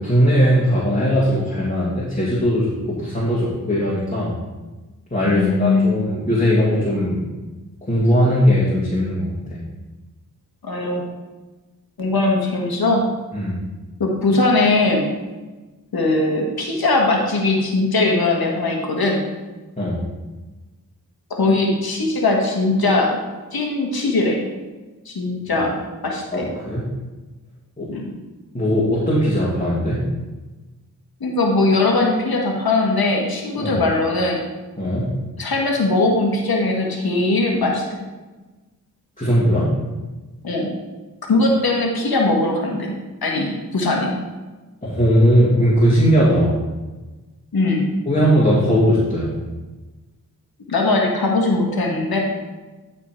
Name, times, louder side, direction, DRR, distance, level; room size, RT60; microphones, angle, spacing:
voice 1, 0.0-4.4 5.1-7.2 7.9-9.6 13.3-13.6 19.8-20.0 25.5-25.6 26.3-26.8 27.8-27.9 28.5-30.0 33.6-33.8 34.8-35.1 39.2-39.7 44.8-46.6 48.1-49.3, equal, 20° left, -8 dB, 2.5 m, -19 dB
voice 2, 5.2-6.0 10.6-11.1 12.0-13.0 14.0-15.1 15.9-19.2 21.3-23.2 23.5-24.4 25.1-25.7 26.0-26.5 27.9-28.1 31.2-34.4 35.4-37.8 40.4-40.7 41.3-42.9 43.2-44.1 47.5-47.9 50.7-52.2, left 2 dB, 80° left, 0 dB, 1.8 m, -20 dB
11.5 x 4.4 x 4.5 m, 1.2 s
cardioid pair, 45°, 36 cm